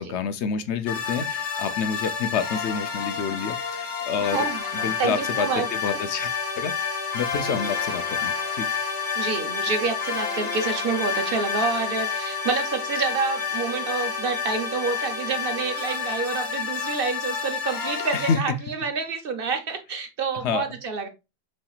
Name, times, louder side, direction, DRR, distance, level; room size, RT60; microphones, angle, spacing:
voice 1, 0.0-4.4 4.8-6.7 7.1-8.7 18.1-18.4 20.4-20.6, left 6 dB, 75° left, 0.9 m, -28 dB
sound 1, 0.9-18.4, left 6 dB, 50° left, 0.9 m, -29 dB
voice 2, 4.2-5.7 9.2-21.1, right 5 dB, 55° right, 0.9 m, -28 dB
5.6 x 3.2 x 2.3 m
omnidirectional pair, 1.2 m